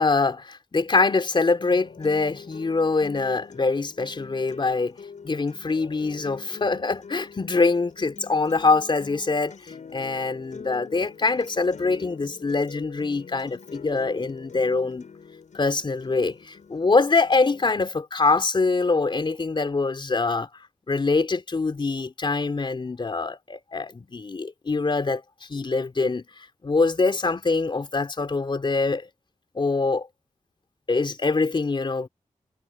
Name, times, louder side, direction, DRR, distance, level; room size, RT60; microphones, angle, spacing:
voice 1, 0.0-5.0 5.2-15.1 15.5-20.5 20.9-25.2 25.5-29.1 29.5-30.1 30.9-32.1, left 3 dB, 40° left, 3.5 m, -24 dB
sound 1, 1.7-17.7, left 6 dB, 70° left, 7.6 m, -44 dB
wide cardioid pair, 150°, 13 cm